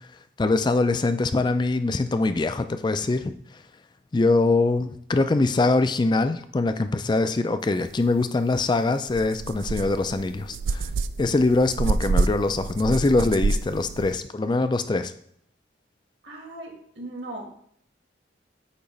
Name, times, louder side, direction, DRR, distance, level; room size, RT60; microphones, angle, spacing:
voice 1, 0.4-3.3 4.1-10.9 11.2-15.1, left 3 dB, 25° left, 10 dB, 0.3 m, -23 dB
sound 1, 8.5-8.6 9.1-14.1, right 3 dB, 85° right, 0.3 m, -27 dB
voice 2, 16.2-17.5, right 1 dB, 70° right, 0 dB, 1.8 m, -38 dB
8.6 x 2.9 x 5.2 m, 0.67 s
head